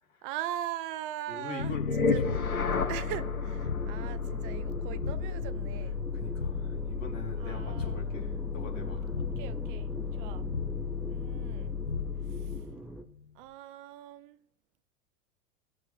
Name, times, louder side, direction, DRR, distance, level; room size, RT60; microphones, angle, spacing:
voice 1, 0.2-2.2 2.9-6.0 7.4-8.1 9.4-10.5 11.1-11.8 12.3-12.6 13.3-14.4, right 12 dB, 40° right, 0.7 m, -40 dB
voice 2, 1.3-2.4 2.8-2.9 3.7-3.8 6.1-9.1, left 3 dB, 65° left, 3.4 m, -43 dB
sound 1, 1.6-12.7, left 5 dB, 85° left, 1.0 m, -33 dB
sound 2, 2.3-13.0, right 1 dB, ahead, 0.8 m, -42 dB
18.5 x 6.7 x 3.3 m
figure-of-eight pair, 90°, 42 cm